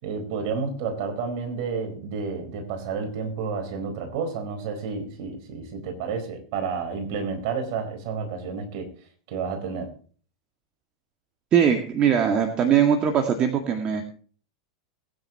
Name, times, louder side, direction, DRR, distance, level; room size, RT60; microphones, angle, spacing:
voice 1, 0.0-8.9 9.3-9.9, right 5 dB, 55° right, 5 dB, 4.4 m, -30 dB
voice 2, 11.5-14.0, right 8 dB, 35° right, 4 dB, 2.0 m, -21 dB
20.5 x 9.9 x 2.9 m, 0.43 s
figure-of-eight pair, 90°, 3 cm